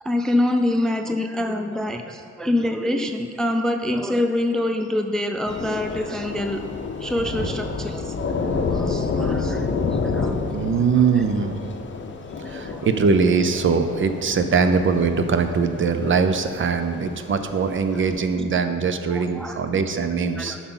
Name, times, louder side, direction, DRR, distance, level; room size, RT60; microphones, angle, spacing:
voice 1, 0.0-6.6 7.0-8.2 8.7-9.7 10.0-10.3 11.1-11.2 12.4-12.8 17.9-18.0 19.1-19.6 20.4-20.6, left 1 dB, ahead, 5 dB, 0.4 m, -25 dB
Thunder / Rain, 5.5-18.3, left 4 dB, 40° left, 0.7 m, -30 dB
sound 1, 7.0-10.6, left 1 dB, 20° right, 1.4 m, -39 dB
voice 2, 10.5-11.5 12.5-20.6, right 5 dB, 40° right, 8 dB, 0.6 m, -21 dB
9.8 x 5.8 x 3.8 m, 2.2 s
cardioid pair, 90°, 30 cm